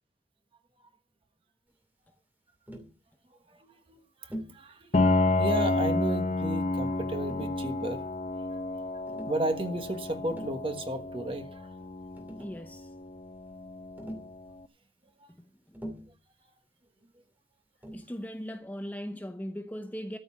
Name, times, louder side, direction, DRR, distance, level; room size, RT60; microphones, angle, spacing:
Tap, 2.7-3.0 4.3-4.6 5.7-6.2 7.3-8.1 9.1-9.4 10.1-10.6 11.8-11.9 12.1-12.7 14.0-14.4 15.7-16.2 17.8-18.2, equal, 10° right, 2.5 m, -43 dB
voice 1, 3.3-8.0 8.5-8.6 9.3-11.7 15.2-15.3, right 1 dB, 30° right, 1.4 m, -34 dB
Piano, 4.9-14.5, left 2 dB, 40° left, 0.7 m, -30 dB
voice 2, 12.3-12.9 15.3-15.8 17.9-20.2, equal, 10° left, 0.8 m, -39 dB
13.5 x 5.4 x 8.4 m
head